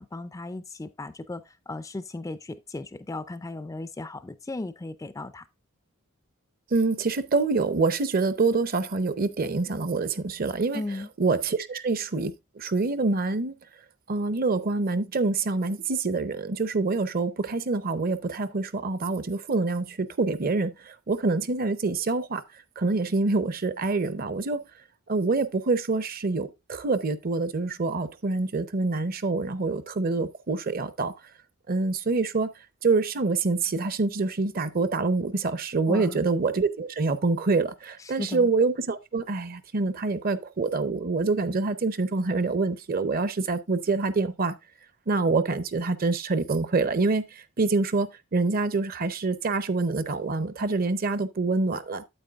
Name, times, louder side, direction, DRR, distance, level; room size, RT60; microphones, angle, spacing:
voice 1, 0.0-5.4 10.7-11.1 35.9-36.2 38.1-38.5, left 2 dB, 15° left, 0.3 m, -36 dB
voice 2, 6.7-10.8 11.2-13.5 14.1-22.4 22.8-24.7 25.1-31.1 31.7-32.5 32.8-44.5 45.1-52.0, right 3 dB, 45° right, 0.6 m, -26 dB
8.8 x 8.2 x 2.4 m
head